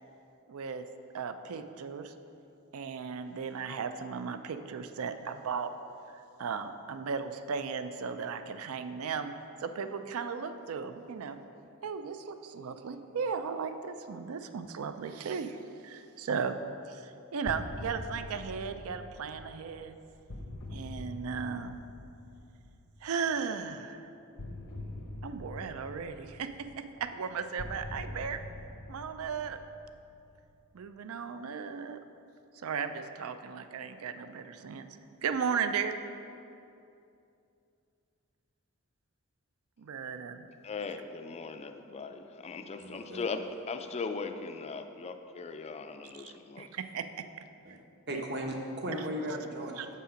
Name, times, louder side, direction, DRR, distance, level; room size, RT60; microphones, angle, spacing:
voice 1, 0.5-0.8 1.1-2.1 2.7-5.7 6.4-9.3 9.6-11.4 11.8-15.6 15.8-16.6 16.9-20.0 20.7-21.7 23.0-24.1 25.2-28.4 28.9-29.6 30.7-32.0 32.6-34.8 35.2-35.9 39.8-40.5 46.2-47.2 48.1-48.2 49.8-49.9, right 6 dB, 70° right, 9 dB, 0.4 m, -36 dB
sound 1, 17.4-23.2 24.4-30.6, left 1 dB, 90° left, 0.9 m, -45 dB
voice 2, 40.6-46.7, left 4 dB, 30° left, 7 dB, 0.3 m, -39 dB
voice 3, 42.8-43.2 47.6-47.8 48.1-49.9, equal, 50° right, 1 dB, 1.0 m, -36 dB
7.3 x 5.5 x 5.0 m, 2.7 s
head